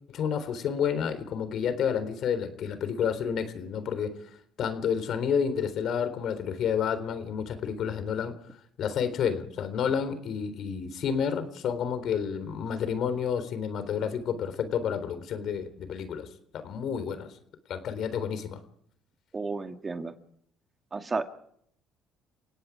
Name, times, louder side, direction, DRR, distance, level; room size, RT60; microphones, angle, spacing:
voice 1, 0.1-4.2 4.6-8.3 8.8-16.3 16.5-17.3 17.7-18.6, left 7 dB, 60° left, 11 dB, 3.8 m, -30 dB
voice 2, 19.3-20.1 20.9-21.2, right 3 dB, 30° right, 7 dB, 1.9 m, -32 dB
30.0 x 17.5 x 4.9 m, 0.68 s
supercardioid pair, 85°, 0 cm